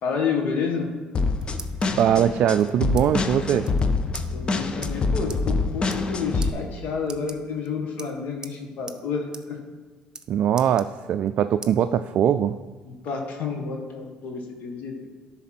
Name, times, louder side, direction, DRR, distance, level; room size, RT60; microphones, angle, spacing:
voice 1, 0.0-0.9 4.3-9.6 12.8-15.1, left 5 dB, 65° left, 2 dB, 1.6 m, -29 dB
sound 1, 1.0-2.0 2.6-3.1 3.3-3.4 3.6-3.8 4.1-4.3 4.8-4.9 5.3-5.4 5.8-6.1 6.4-6.5 7.0-7.7 8.0-8.6 8.9-9.0 9.3-9.4 9.7-10.3 10.6-11.3 11.6-11.7 12.2-13.1, right 4 dB, 25° right, 0.7 m, -41 dB
sound 2, 1.1-6.5, left 3 dB, 35° left, 0.8 m, -25 dB
voice 2, 2.0-3.7 10.3-12.6, right 9 dB, 60° right, 9 dB, 0.3 m, -21 dB
11.0 x 4.1 x 6.0 m, 1.4 s
supercardioid pair, 80°, 3 cm